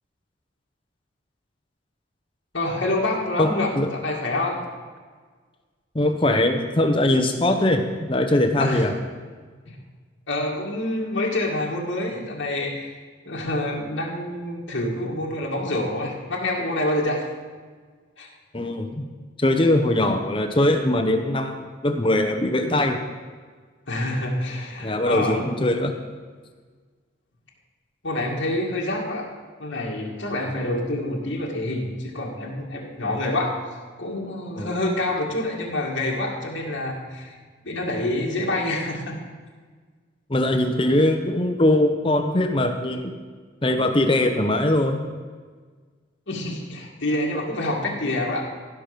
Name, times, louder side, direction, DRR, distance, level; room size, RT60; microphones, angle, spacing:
voice 1, 2.5-3.7 4.0-4.6 8.6-8.8 10.3-12.9 13.2-17.2 18.2-18.3 23.9-25.4 28.0-29.3 29.6-33.6 34.0-37.4 37.6-39.2 46.3-48.4, left 1 dB, 70° left, -3 dB, 2.1 m, -27 dB
voice 2, 3.4-3.9 5.9-8.9 18.5-19.0 19.4-23.0 24.8-25.9 30.4-30.5 34.6-34.8 40.3-43.1 43.6-45.0, left 1 dB, 25° left, 5 dB, 0.8 m, -21 dB
15.5 x 6.0 x 5.1 m, 1.5 s
head